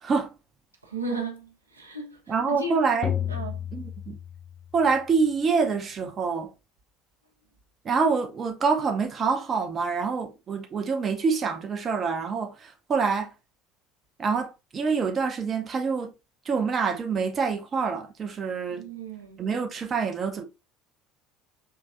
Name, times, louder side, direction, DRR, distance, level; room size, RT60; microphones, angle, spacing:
voice 1, 0.0-0.3 2.3-3.1 3.7-4.2 4.7-6.5 7.8-13.3 14.2-16.1 16.4-18.9 19.4-20.4, right 5 dB, 30° right, 0.7 m, -26 dB
voice 2, 0.8-2.2 2.5-2.8 3.3-3.6 18.8-19.4, right 2 dB, 85° right, 0.8 m, -34 dB
sound 1, 3.0-5.0, left 9 dB, 35° left, 0.5 m, -32 dB
4.7 x 3.0 x 2.5 m
figure-of-eight pair, 65°, 0 cm